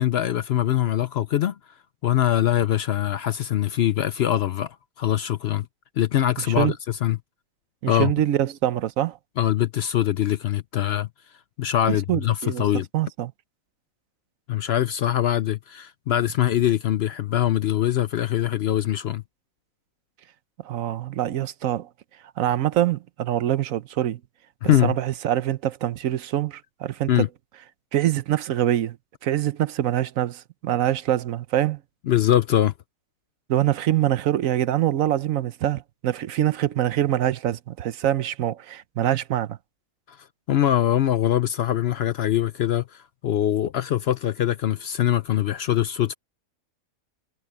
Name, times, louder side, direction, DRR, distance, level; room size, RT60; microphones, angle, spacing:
voice 1, 0.0-1.6 2.0-5.6 6.0-7.2 7.9-8.1 9.4-11.1 11.6-12.9 14.5-19.2 24.6-25.0 27.1-27.3 32.1-32.7 40.1-40.2 40.5-46.1, left 12 dB, 60° left, 0.7 m, -23 dB
voice 2, 7.8-9.2 11.9-12.6 12.9-13.3 20.6-21.9 22.4-24.2 24.8-27.2 27.9-29.0 29.2-31.8 33.5-39.6, right 12 dB, 75° right, 1.1 m, -24 dB
omnidirectional pair, 1.4 m